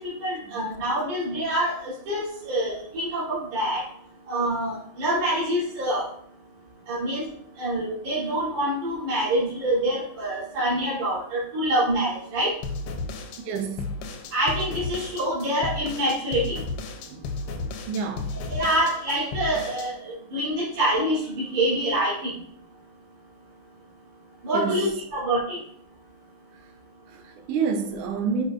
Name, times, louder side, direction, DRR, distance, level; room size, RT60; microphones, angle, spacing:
voice 1, 0.0-3.8 4.3-6.1 6.9-7.3 7.6-12.5 14.3-16.6 18.5-22.3 24.4-25.6, right 1 dB, 55° right, -9 dB, 4.3 m, -26 dB
sound 1, 12.6-19.9, left 3 dB, 80° left, 2.4 m, -33 dB
voice 2, 13.4-13.9 17.0-17.3 17.9-18.3 24.5-24.9 27.1-28.4, right 5 dB, 70° right, 5 dB, 2.1 m, -29 dB
7.0 x 6.4 x 2.5 m, 0.66 s
omnidirectional pair, 4.0 m